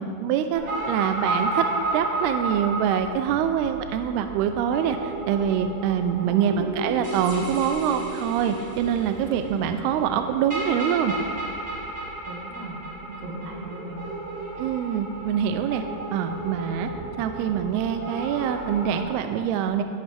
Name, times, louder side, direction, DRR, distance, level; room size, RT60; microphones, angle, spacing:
voice 1, 0.0-1.7 1.9-11.1 14.6-15.8 16.1-16.9 17.2-19.8, right 8 dB, 80° right, 7 dB, 2.5 m, -25 dB
sound 1, 0.5-19.0, right 2 dB, 20° right, 3.3 m, -33 dB
voice 2, 6.1-6.4 12.3-14.1, right 2 dB, 55° right, -1 dB, 2.0 m, -38 dB
19.0 x 10.5 x 3.4 m, 2.3 s
omnidirectional pair, 4.8 m